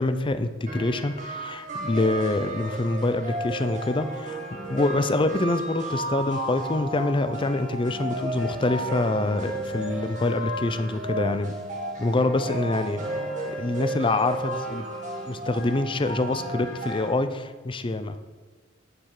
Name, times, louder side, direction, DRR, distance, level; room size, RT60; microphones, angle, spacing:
voice 1, 0.0-4.4 4.7-11.5 12.0-13.2 13.4-14.9 15.3-18.2, left 2 dB, 25° left, 11 dB, 0.5 m, -26 dB
sound 1, 0.7-17.1, right 1 dB, 40° right, 1.8 m, -33 dB
8.8 x 7.4 x 4.8 m, 1.4 s
head